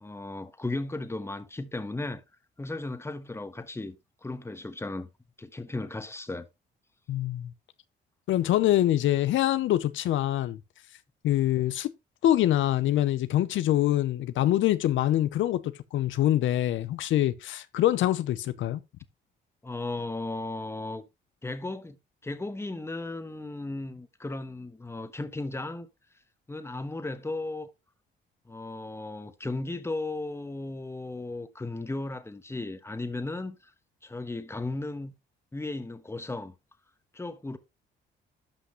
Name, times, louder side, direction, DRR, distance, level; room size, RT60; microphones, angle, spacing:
voice 1, 0.0-2.2 2.6-4.0 4.2-5.1 5.4-6.5 19.6-21.0 21.4-25.9 26.5-27.7 28.5-33.7 34.0-35.1 35.5-36.5 37.1-37.6, left 2 dB, 15° left, 1.2 m, -35 dB
voice 2, 7.1-7.5 8.3-10.6 11.2-11.9 12.2-15.6 15.9-18.8, left 13 dB, 80° left, 0.7 m, -24 dB
11.5 x 5.9 x 3.1 m
cardioid pair, 90°, 20 cm